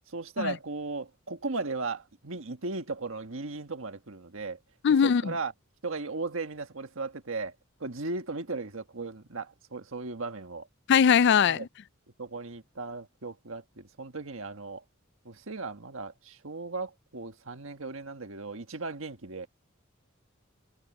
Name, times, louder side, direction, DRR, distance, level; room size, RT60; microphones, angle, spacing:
voice 1, 0.1-4.6 4.9-5.5 5.8-7.5 7.8-10.7 11.4-11.7 12.2-14.8 15.2-19.5, right 3 dB, 75° right, 1.6 m, -36 dB
voice 2, 4.8-5.3 10.9-11.7, left 7 dB, 55° left, 0.4 m, -21 dB
head